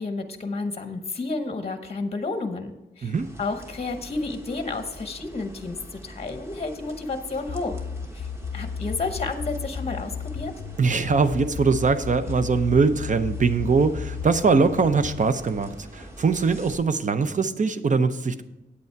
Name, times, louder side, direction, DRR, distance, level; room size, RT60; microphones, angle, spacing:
voice 1, 0.0-5.8 6.0-7.7 8.1-8.3 8.5-10.5, left 3 dB, 35° left, 8 dB, 0.8 m, -31 dB
sound 1, 3.1-16.8, equal, 15° right, 1.2 m, -44 dB
sound 2, 7.5-15.2, left 7 dB, 85° left, 0.5 m, -34 dB
voice 2, 10.8-18.4, right 4 dB, 40° right, 11 dB, 0.6 m, -22 dB
8.5 x 8.2 x 4.5 m, 1.0 s
wide cardioid pair, 130°, 19 cm